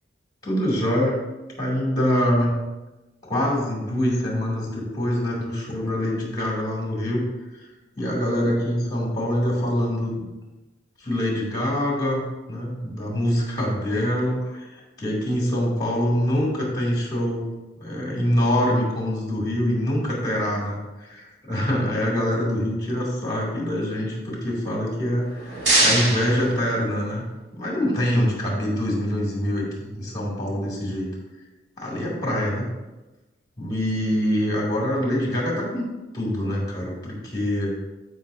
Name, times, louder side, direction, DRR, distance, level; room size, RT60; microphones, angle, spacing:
voice 1, 0.4-1.3 1.6-2.5 3.2-7.2 8.0-10.3 11.0-12.2 12.5-14.7 15.0-17.5 17.8-27.2 27.5-31.1 31.8-32.6 33.6-35.9 36.1-37.7, equal, 20° left, -2 dB, 2.4 m, -24 dB
sound 1, 25.1-27.3, right 2 dB, 80° right, 2.8 m, -24 dB
13.5 x 5.5 x 2.6 m, 1.1 s
head